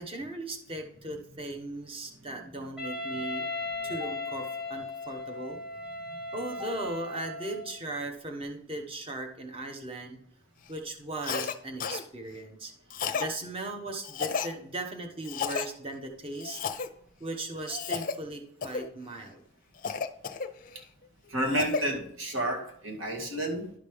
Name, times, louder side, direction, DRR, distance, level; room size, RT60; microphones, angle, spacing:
voice 1, 0.0-3.5 3.8-5.6 6.3-10.2 10.7-12.7 13.1-16.6 17.2-19.4, right 2 dB, 25° right, 4 dB, 1.0 m, -38 dB
Wind instrument woodwind instrument, 2.8-7.8, left 2 dB, 5° right, 1.4 m, -37 dB
Cough, 11.2-11.5 11.8-12.0 12.9-13.3 14.0-14.5 15.2-15.7 16.4-16.9 17.6-18.1 18.6-18.9 19.8-20.8 21.2-21.8, left 6 dB, 40° left, 0.5 m, -32 dB
voice 2, 21.3-23.7, right 1 dB, 75° right, 0 dB, 2.0 m, -31 dB
11.5 x 5.1 x 3.5 m, 0.69 s
head